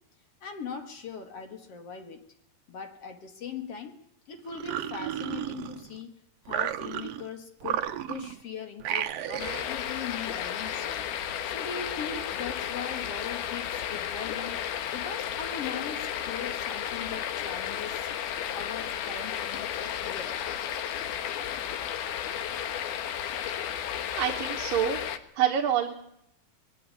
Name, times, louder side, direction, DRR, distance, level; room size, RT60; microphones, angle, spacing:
voice 1, 0.4-2.3 2.7-4.0 4.3-6.2 6.5-11.1 11.5-18.1 18.5-20.4, left 6 dB, 45° left, 2.5 m, -40 dB
sound 1, 4.5-6.0 6.5-7.3 7.6-8.4 8.8-9.7, right 11 dB, 85° right, 1.4 m, -33 dB
sound 2, 9.4-25.2, left 9 dB, 85° left, 3.3 m, -33 dB
voice 2, 24.2-25.0 25.3-25.9, right 9 dB, 70° right, 3.0 m, -26 dB
21.5 x 15.5 x 9.9 m
omnidirectional pair, 4.3 m